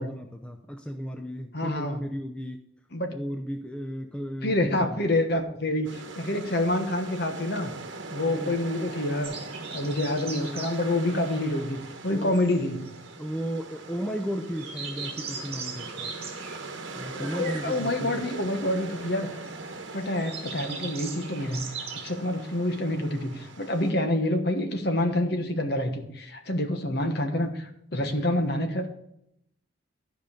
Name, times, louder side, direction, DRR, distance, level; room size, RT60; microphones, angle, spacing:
voice 1, 0.0-2.6 3.1-5.1 8.3-8.6 12.1-12.4 13.2-16.1 16.9-18.2, equal, 5° left, 4 dB, 0.5 m, -34 dB
voice 2, 1.5-2.0 2.9-3.2 4.4-7.7 8.1-9.3 9.7-12.8 17.1-19.4 19.9-21.7 22.0-28.9, left 1 dB, 55° left, 5 dB, 1.2 m, -27 dB
sound 1, 5.8-23.9, right 3 dB, 70° right, 1.1 m, -41 dB
sound 2, 9.2-22.1, right 5 dB, 30° right, 1.7 m, -41 dB
12.5 x 5.2 x 5.1 m, 0.76 s
head